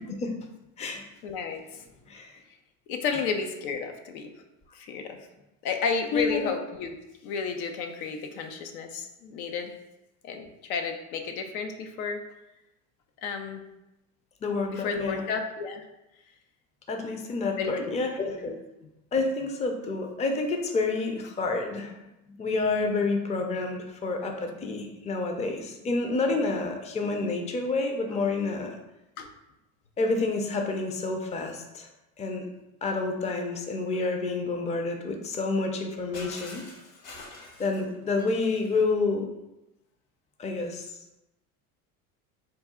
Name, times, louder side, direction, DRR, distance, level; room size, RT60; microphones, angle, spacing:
voice 1, 1.2-1.8 2.9-4.3 4.7-5.2 5.6-7.0 7.2-9.7 10.2-12.2 13.2-13.6 14.7-15.8 17.6-18.0 29.2-29.3, left 5 dB, 85° left, 5 dB, 0.6 m, -32 dB
voice 2, 2.1-2.4 3.1-3.2 6.1-6.5 14.4-15.2 16.9-18.6 19.1-28.8 30.0-31.9 32.2-32.4 32.8-36.7 37.6-39.3 40.4-40.9, left 3 dB, 15° left, 4 dB, 0.4 m, -29 dB
Shatter, 36.1-38.9, left 3 dB, 50° left, 1.0 m, -45 dB
3.9 x 2.3 x 3.6 m, 0.94 s
supercardioid pair, 95°, 42 cm